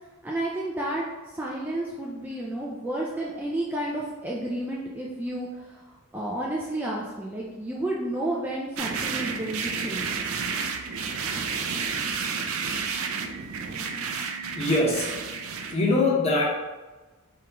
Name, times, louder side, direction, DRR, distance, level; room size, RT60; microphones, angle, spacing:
voice 1, 0.2-5.8 6.1-10.2, right 1 dB, 10° right, -4 dB, 0.4 m, -31 dB
sound 1, 8.8-15.7, right 5 dB, 70° right, 0.4 m, -31 dB
voice 2, 14.6-15.1 15.6-16.4, left 2 dB, 30° left, -4 dB, 0.9 m, -22 dB
4.5 x 3.6 x 3.0 m, 1.2 s
head